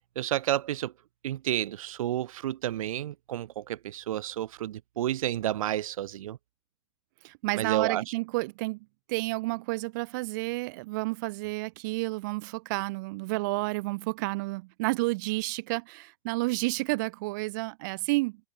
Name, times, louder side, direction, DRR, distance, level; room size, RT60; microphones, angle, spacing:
voice 1, 0.2-0.9 1.2-6.4 7.5-8.0, right 12 dB, 80° right, 0.7 m, -30 dB
voice 2, 7.2-8.8 9.1-18.4, right 24 dB, 35° right, 0.5 m, -30 dB
supercardioid pair, 165°, 17 cm